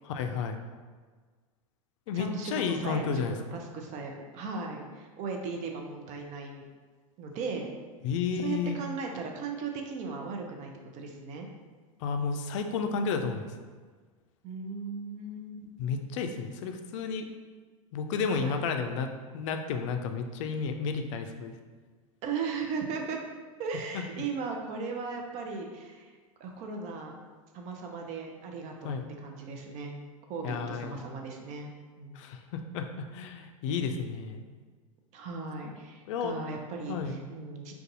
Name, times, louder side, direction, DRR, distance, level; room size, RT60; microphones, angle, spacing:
voice 1, 0.0-0.6 2.1-3.6 8.0-8.8 12.0-13.6 15.8-17.3 17.9-21.5 23.9-24.0 28.8-29.1 30.4-31.0 32.1-34.4 36.1-36.4 36.9-37.2, left 5 dB, 60° left, 6 dB, 0.4 m, -32 dB
voice 2, 2.1-6.7 7.2-7.7 8.4-11.5 14.4-15.8 18.3-18.6 22.2-23.2 23.6-26.1 26.4-27.2 27.5-29.9 30.3-31.7 32.0-32.2 35.1-37.7, right 4 dB, 40° right, 2 dB, 0.6 m, -37 dB
2.5 x 2.3 x 4.0 m, 1.5 s
hypercardioid pair, 95°, 18 cm